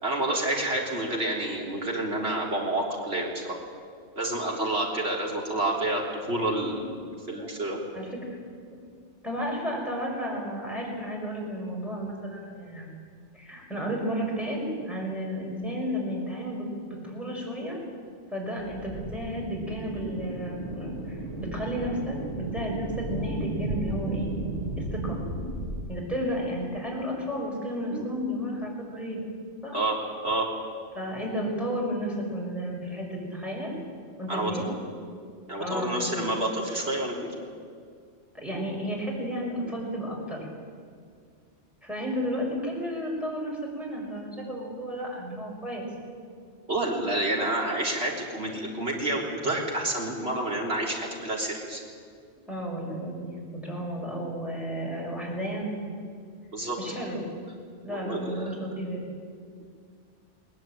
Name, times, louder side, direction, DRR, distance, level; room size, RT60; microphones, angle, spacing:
voice 1, 0.0-3.6 4.2-7.8 27.9-28.1 29.7-30.0 30.2-30.5 34.3-34.5 35.5-37.3 46.7-51.8 56.5-56.8 57.9-58.5, right 1 dB, 65° right, -1 dB, 4.0 m, -29 dB
voice 2, 9.2-12.9 13.3-16.7 17.0-17.8 18.3-24.3 24.8-25.2 25.9-29.3 29.6-29.8 30.9-33.7 34.2-34.7 35.6-36.1 38.3-40.5 41.8-45.9 52.5-55.7 56.8-57.2 57.8-59.0, equal, ahead, -3 dB, 6.0 m, -32 dB
sound 1, 18.6-25.9, right 2 dB, 80° right, 1.8 m, -34 dB
20.0 x 19.5 x 9.1 m, 2.1 s
omnidirectional pair, 1.2 m